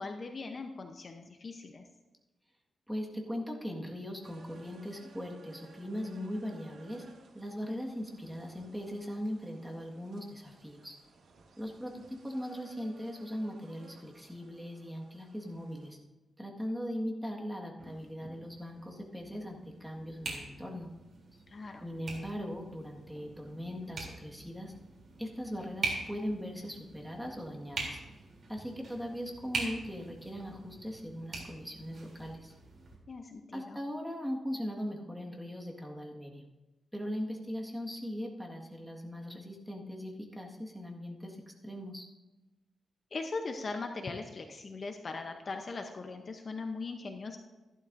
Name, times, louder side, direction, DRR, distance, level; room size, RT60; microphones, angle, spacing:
voice 1, 0.0-1.8 21.5-21.8 33.1-33.8 43.1-47.4, left 3 dB, 40° left, 5 dB, 0.8 m, -40 dB
voice 2, 2.9-7.0 7.3-10.9 11.6-16.0 16.4-20.9 21.8-24.7 25.2-28.0 28.5-32.5 33.5-36.5 36.9-41.4 41.6-42.0, equal, 5° right, -1 dB, 1.7 m, -39 dB
sound 1, 4.2-15.9, right 4 dB, 75° right, 1.4 m, -59 dB
sound 2, 17.8-33.0, right 3 dB, 55° right, 3.2 m, -43 dB
14.0 x 11.5 x 2.6 m, 1.1 s
wide cardioid pair, 120°, 0 cm